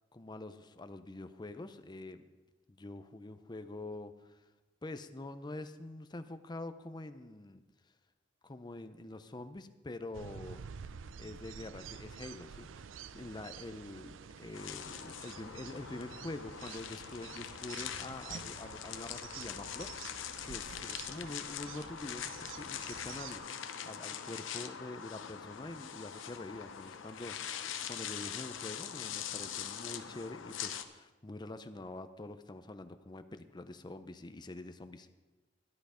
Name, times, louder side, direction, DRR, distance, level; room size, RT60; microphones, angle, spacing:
voice 1, 0.1-2.2 2.7-4.4 4.8-7.6 8.4-10.6 11.2-12.9 13.1-35.1, left 2 dB, 20° left, 10 dB, 0.5 m, -46 dB
sound 1, 10.1-23.5, right 7 dB, 85° right, 0.4 m, -49 dB
sound 2, 14.5-30.8, left 8 dB, 85° left, 0.8 m, -43 dB
11.5 x 10.5 x 5.0 m, 1.2 s
head